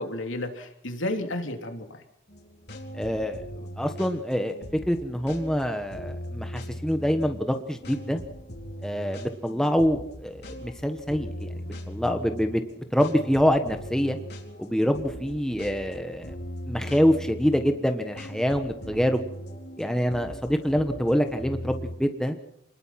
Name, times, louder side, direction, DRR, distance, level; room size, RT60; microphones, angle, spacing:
voice 1, 0.0-2.0, left 1 dB, 75° left, 5 dB, 3.1 m, -32 dB
sound 1, 2.3-22.0, equal, 55° left, 3.9 m, -40 dB
voice 2, 2.9-4.6 4.9-8.2 8.8-11.5 11.9-12.6 12.9-14.2 14.6-16.3 16.7-19.2 19.8-22.4, equal, 5° left, 6 dB, 1.2 m, -25 dB
27.5 x 20.5 x 5.9 m, 0.75 s
head